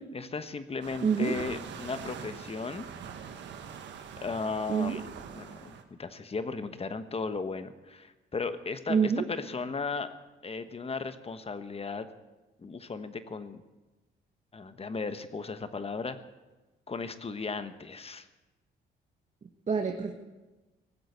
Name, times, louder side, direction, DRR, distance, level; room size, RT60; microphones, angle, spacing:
voice 1, 0.1-2.9 4.2-5.0 5.3-10.1 10.4-12.1 12.6-13.6 14.5-16.2 16.9-18.3, left 4 dB, 30° left, 10 dB, 1.2 m, -36 dB
sound 1, 0.8-5.8, right 7 dB, 70° right, 1.5 m, -43 dB
voice 2, 1.0-1.3 4.7-5.0 8.9-9.3 19.7-20.1, right 6 dB, 40° right, 2 dB, 1.4 m, -26 dB
19.0 x 7.8 x 8.0 m, 1.1 s
cardioid pair, 75°, 19 cm